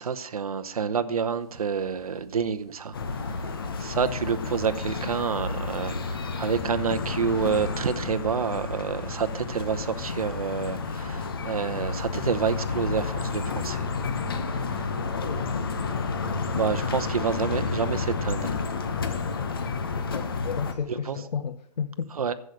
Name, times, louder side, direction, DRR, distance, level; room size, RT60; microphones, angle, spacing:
voice 1, 0.0-3.5 3.8-13.9 14.5-14.9 15.3-15.4 16.5-18.5 20.9-21.2 22.1-22.3, right 6 dB, 60° right, 10 dB, 0.9 m, -28 dB
sound 1, 1.4-18.0, right 1 dB, 10° right, 0.4 m, -50 dB
sound 2, 2.9-20.7, left 4 dB, 35° left, 0.9 m, -31 dB
voice 2, 17.4-17.7 20.0-22.1, left 7 dB, 85° left, 10 dB, 0.8 m, -33 dB
11.0 x 7.8 x 6.5 m, 0.72 s
hypercardioid pair, 175°, 21 cm